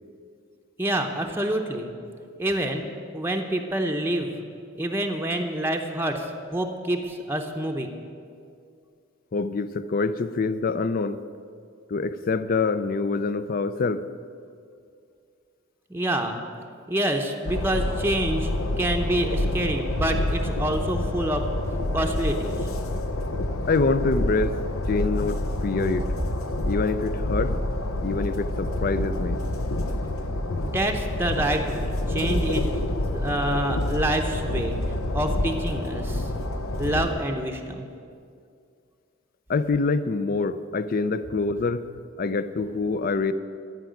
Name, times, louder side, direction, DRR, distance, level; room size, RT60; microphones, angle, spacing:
voice 1, 0.8-1.9 2.4-2.8 3.1-4.3 4.8-7.9 15.9-16.4 16.9-18.5 18.8-21.5 21.9-22.7 30.5-32.7 33.1-34.8 35.1-36.3 36.8-37.9, right 1 dB, 10° right, 3 dB, 0.7 m, -27 dB
voice 2, 9.3-11.2 11.9-14.0 23.7-24.6 24.9-26.1 26.7-27.5 28.0-29.4 39.5-41.8 42.2-43.3, left 3 dB, 45° left, 13 dB, 0.4 m, -25 dB
Train, 17.5-37.1, left 1 dB, 90° left, 0.9 m, -28 dB
13.0 x 5.9 x 9.3 m, 2.3 s
head